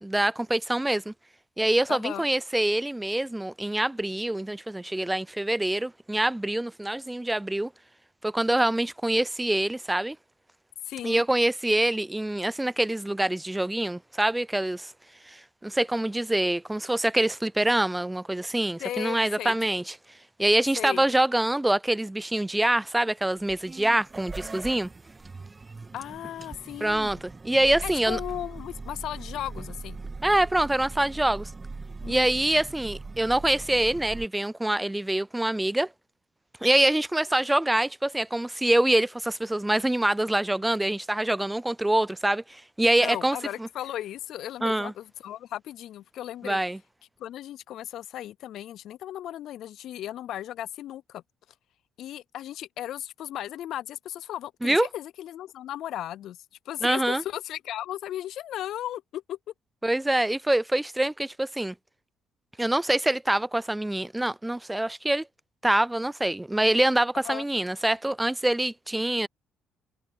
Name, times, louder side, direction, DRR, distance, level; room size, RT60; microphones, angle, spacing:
voice 1, 0.0-1.1 1.6-7.7 8.2-10.2 11.0-14.9 15.3-19.9 20.4-24.9 26.8-28.2 30.2-31.5 32.1-35.9 36.6-43.7 44.6-44.9 46.4-46.8 54.6-54.9 56.8-57.2 59.8-61.7 62.6-65.3 65.6-69.3, right 1 dB, 10° right, 0.4 m, -25 dB
voice 2, 1.9-2.3 10.8-11.2 18.8-19.6 20.8-21.1 25.9-27.1 27.8-30.0 32.0-32.3 43.0-46.6 47.2-51.2 52.0-56.4 56.7-59.4 67.2-67.4, left 12 dB, 70° left, 0.4 m, -36 dB
sound 1, 23.4-34.2, right 3 dB, 25° right, 2.6 m, -40 dB
hypercardioid pair, 60°, 0 cm